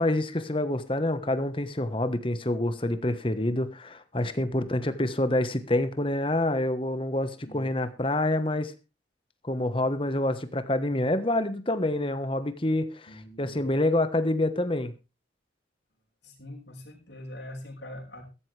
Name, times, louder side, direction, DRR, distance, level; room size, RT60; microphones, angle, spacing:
voice 1, 0.0-8.7 9.4-14.9, left 1 dB, 30° left, 11 dB, 1.3 m, -27 dB
voice 2, 13.1-13.6 16.2-18.2, left 1 dB, 70° left, 1 dB, 5.7 m, -44 dB
16.0 x 14.0 x 3.4 m, 0.29 s
head